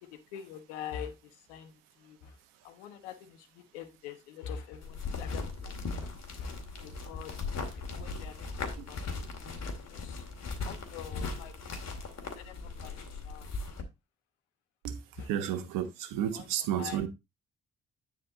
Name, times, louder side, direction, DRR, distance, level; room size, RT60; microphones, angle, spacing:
voice 1, 0.0-2.4 2.6-6.1 6.4-7.3 7.7-9.0 9.3-9.5 9.9-10.2 10.6-11.5 12.3-13.5 15.2-15.3 16.3-17.0, left 8 dB, 85° left, 1.2 m, -45 dB
sound 1, 4.8-13.8, left 4 dB, 50° left, 2.3 m, -38 dB
voice 2, 14.8-17.1, right 10 dB, 75° right, 1.2 m, -32 dB
9.8 x 4.5 x 4.0 m
hypercardioid pair, 45°, 33 cm